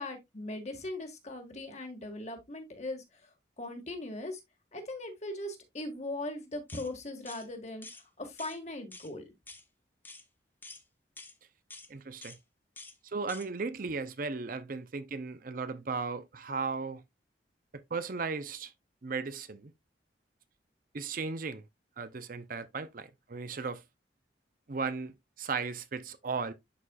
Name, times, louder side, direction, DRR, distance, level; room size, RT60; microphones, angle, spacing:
voice 1, 0.0-3.0 3.6-4.4 4.7-7.9 8.2-9.3, left 2 dB, 40° left, 1.7 m, -39 dB
sound 1, 6.7-6.9 7.3-7.5 7.8-8.0 8.4-8.6 8.9-9.1 9.5-9.6 10.0-10.2 10.6-10.8 11.2-11.3 11.7-11.9 12.2-12.4 12.8-13.0 13.3-13.5, left 3 dB, 10° left, 0.8 m, -48 dB
voice 2, 11.9-12.4 13.1-17.0 17.9-18.7 19.0-19.7 20.9-21.6 22.0-23.8 24.7-26.5, right 4 dB, 50° right, 0.6 m, -36 dB
11.0 x 4.3 x 2.3 m
head